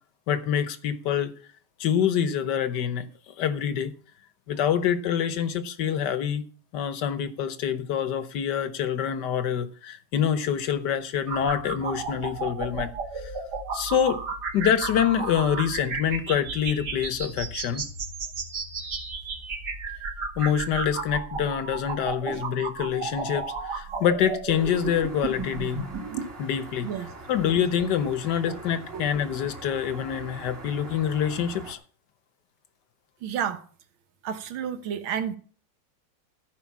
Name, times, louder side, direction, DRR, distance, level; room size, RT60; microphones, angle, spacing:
voice 1, 0.3-1.3 1.8-3.1 3.4-3.9 4.5-6.4 6.7-12.9 13.1-13.3 13.7-14.2 14.5-17.9 20.4-25.8 26.4-26.9 27.3-31.8, left 9 dB, 60° left, 1.4 m, -26 dB
sound 1, 11.3-26.2, right 4 dB, 50° right, 2.4 m, -33 dB
sound 2, 24.5-31.7, right 2 dB, 30° right, 1.8 m, -43 dB
voice 2, 33.2-33.6 34.2-35.4, right 8 dB, 70° right, 1.9 m, -31 dB
14.0 x 5.3 x 7.3 m
omnidirectional pair, 2.4 m